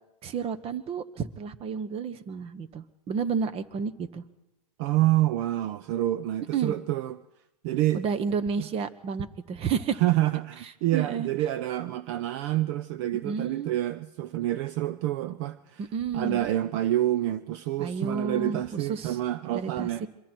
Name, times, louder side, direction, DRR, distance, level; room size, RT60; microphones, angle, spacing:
voice 1, 0.2-4.2 6.5-6.7 7.9-10.0 10.9-11.3 13.2-13.7 15.8-16.4 17.8-19.2 19.5-20.1, right 6 dB, 30° right, 1.3 m, -31 dB
voice 2, 4.8-7.2 7.6-8.0 8.6-8.7 10.0-15.8 16.1-20.0, right 14 dB, 50° right, 0.7 m, -27 dB
26.5 x 24.0 x 4.6 m
hypercardioid pair, 120°, 20 cm